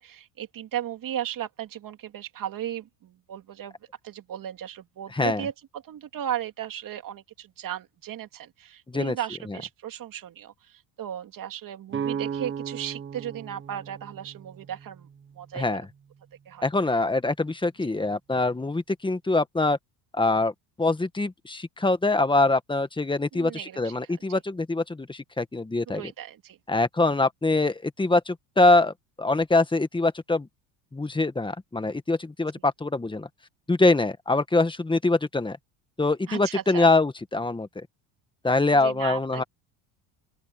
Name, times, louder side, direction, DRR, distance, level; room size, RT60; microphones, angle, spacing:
voice 1, 0.0-3.7 4.0-15.1 15.4-15.8 16.5-16.7 23.3-23.9 24.3-24.4 25.9-26.6 36.3-36.9 38.8-39.4, right 10 dB, 45° right, 2.8 m, -36 dB
voice 2, 5.1-5.4 8.9-9.1 9.5-9.6 15.5-15.8 16.6-19.8 20.1-26.1 26.7-30.5 30.9-33.3 33.7-35.6 36.0-37.9 38.4-39.4, left 2 dB, 10° left, 1.6 m, -24 dB
sound 1, 11.9-15.7, right 7 dB, 25° right, 1.4 m, -35 dB
open air
supercardioid pair, 105°, 44 cm